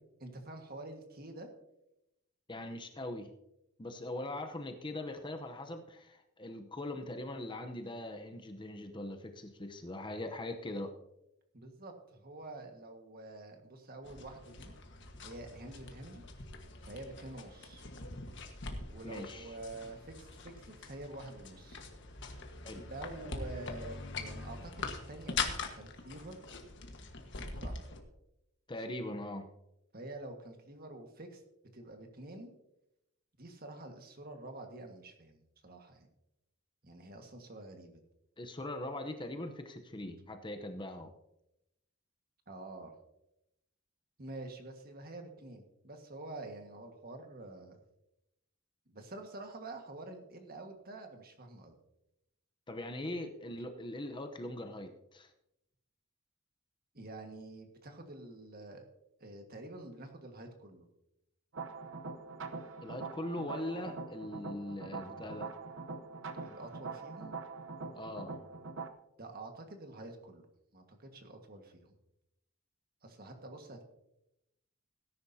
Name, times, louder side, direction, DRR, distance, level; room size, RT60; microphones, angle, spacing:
voice 1, 0.2-1.5 11.5-14.7 15.2-16.2 16.8-17.9 18.9-21.8 22.7-26.4 27.6-27.8 29.9-31.4 31.7-32.5 33.4-36.1 36.8-38.0 42.5-42.9 44.2-47.8 48.9-51.8 56.9-58.8 59.2-60.9 66.4-67.3 69.2-70.4 70.7-71.9 73.0-73.8, right 2 dB, 45° right, 4 dB, 1.7 m, -47 dB
voice 2, 2.5-3.3 3.8-10.9 19.0-19.6 22.6-22.8 28.7-29.5 38.4-41.1 52.7-55.3 62.8-65.5 67.9-68.4, left 1 dB, 25° left, 6 dB, 0.8 m, -41 dB
sound 1, 14.0-28.0, left 4 dB, 60° left, 1.5 m, -43 dB
sound 2, 61.5-68.9, right 4 dB, 65° right, 0.9 m, -43 dB
18.0 x 10.5 x 2.8 m, 0.86 s
head